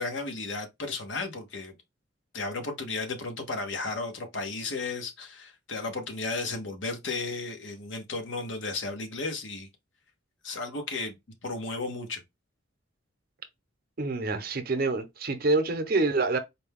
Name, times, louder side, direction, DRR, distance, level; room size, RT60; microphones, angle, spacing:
voice 1, 0.0-1.7 2.3-9.7 10.4-11.1 11.4-12.2, left 3 dB, 70° left, 1.0 m, -34 dB
voice 2, 14.0-16.4, right 3 dB, 50° right, 0.7 m, -26 dB
4.2 x 2.2 x 3.4 m
head